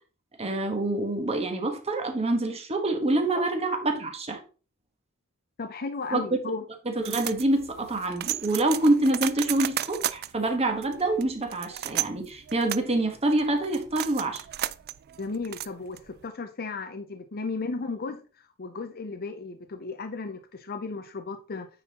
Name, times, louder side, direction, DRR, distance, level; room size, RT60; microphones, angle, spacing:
voice 1, 0.4-4.4 6.1-6.2 6.8-14.4, right 2 dB, 30° right, 1.4 m, -26 dB
voice 2, 5.6-6.6 15.2-21.7, left 4 dB, 45° left, 0.6 m, -35 dB
sound 1, 7.0-16.3, right 13 dB, 45° right, 0.4 m, -34 dB
9.3 x 4.1 x 4.1 m
head